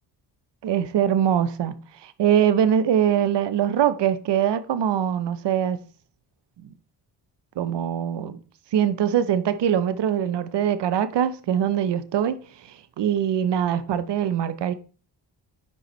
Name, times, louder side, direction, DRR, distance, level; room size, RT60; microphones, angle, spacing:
voice 1, 0.6-1.7 2.0-5.8 6.6-6.7 7.6-8.4 8.7-12.4 12.7-14.7, right 9 dB, 65° right, 0.8 m, -23 dB
9.5 x 5.1 x 3.2 m
supercardioid pair, 55°, 44 cm